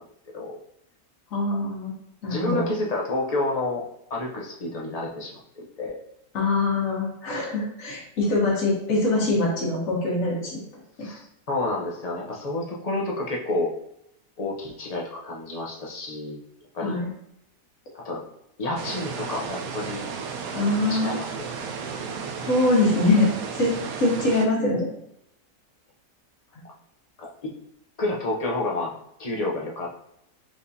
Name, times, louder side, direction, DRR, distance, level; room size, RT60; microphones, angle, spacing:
voice 1, 1.3-1.9 2.2-2.6 6.3-10.6 11.0-11.1 16.8-17.1 20.5-21.2 22.5-23.3 23.5-23.7 24.0-24.9, left 2 dB, 65° left, -5 dB, 1.5 m, -23 dB
voice 2, 2.3-3.8 4.1-6.0 11.0-13.7 14.4-16.4 16.7-17.0 18.0-18.2 18.6-20.1 20.9-21.5 27.2-27.5 28.0-30.0, left 2 dB, 35° left, -2 dB, 0.7 m, -29 dB
sound 1, 18.8-24.5, right 5 dB, 85° right, 1.1 m, -34 dB
4.5 x 3.6 x 2.7 m, 0.78 s
omnidirectional pair, 1.5 m